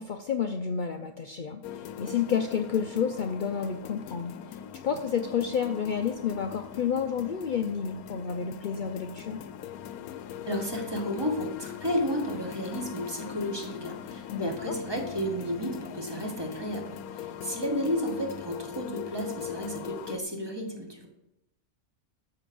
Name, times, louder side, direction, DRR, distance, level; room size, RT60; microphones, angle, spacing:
voice 1, 0.0-9.4 14.3-14.7, left 7 dB, 70° left, 6 dB, 0.4 m, -30 dB
sound 1, 1.6-20.2, left 9 dB, 85° left, 1.1 m, -41 dB
voice 2, 10.4-21.1, equal, 15° right, 1 dB, 1.6 m, -32 dB
12.5 x 4.1 x 6.9 m, 0.89 s
omnidirectional pair, 1.5 m